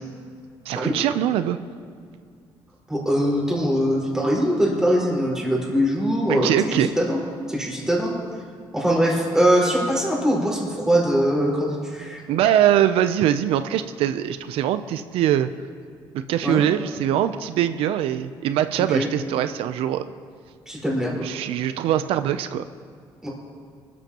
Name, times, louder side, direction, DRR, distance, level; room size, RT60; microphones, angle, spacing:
voice 1, 0.7-1.6 6.3-6.9 12.3-15.5 16.1-20.1 21.2-22.6, right 11 dB, 85° right, 10 dB, 0.5 m, -22 dB
voice 2, 2.9-7.2 7.5-8.1 8.7-12.2 16.4-16.6 18.8-19.1 20.7-21.2 23.2-23.3, equal, 5° right, -5 dB, 4.7 m, -22 dB
24.5 x 13.5 x 2.9 m, 2.2 s
cardioid pair, 135°, 9 cm